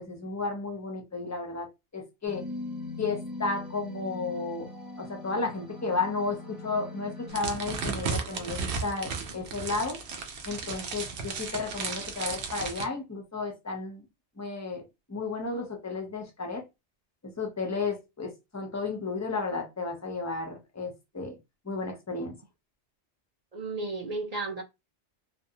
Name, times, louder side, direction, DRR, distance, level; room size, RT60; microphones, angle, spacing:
voice 1, 0.0-1.7 1.9-2.4 3.0-4.7 5.0-10.0 10.5-14.0 14.4-14.8 15.1-16.6 17.2-21.4 21.7-22.4, left 3 dB, 30° left, 0.3 m, -33 dB
sound 1, 2.2-9.4, left 2 dB, 20° right, 0.9 m, -42 dB
sound 2, 7.3-12.8, right 5 dB, 75° right, 0.9 m, -34 dB
voice 2, 23.5-24.6, right 3 dB, 50° right, 0.5 m, -33 dB
2.5 x 2.1 x 2.7 m
omnidirectional pair, 1.2 m